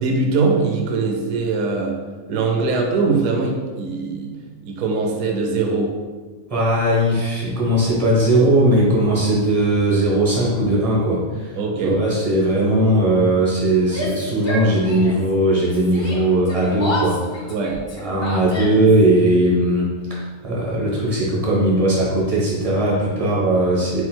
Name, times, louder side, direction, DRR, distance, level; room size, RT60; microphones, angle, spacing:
voice 1, 0.0-2.0 2.3-4.4 4.6-5.9 11.6-12.0 17.5-17.8 18.1-18.3, right 4 dB, 75° right, 1 dB, 1.0 m, -21 dB
voice 2, 6.5-11.6 11.8-17.5 18.0-24.0, right 1 dB, 25° right, -5 dB, 0.9 m, -18 dB
Yell, 13.8-15.3 15.6-19.0, equal, 45° left, 0.3 m, -30 dB
4.5 x 3.8 x 2.2 m, 1.4 s
omnidirectional pair, 1.5 m